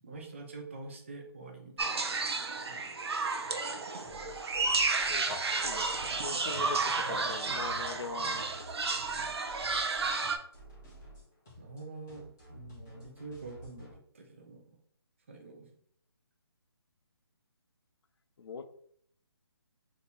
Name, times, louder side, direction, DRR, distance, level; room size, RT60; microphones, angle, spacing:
voice 1, 0.0-2.1 2.7-3.0 11.6-14.8 15.3-15.7, right 3 dB, 30° right, 2 dB, 0.7 m, -46 dB
sound 1, 1.8-10.4, right 3 dB, 75° right, 0.7 m, -32 dB
sound 2, 4.0-13.9, equal, 5° left, 0.4 m, -52 dB
voice 2, 5.1-5.9 6.2-8.7 18.4-18.7, left 5 dB, 70° left, 9 dB, 0.5 m, -42 dB
3.5 x 2.8 x 4.1 m, 0.64 s
hypercardioid pair, 175°, 14 cm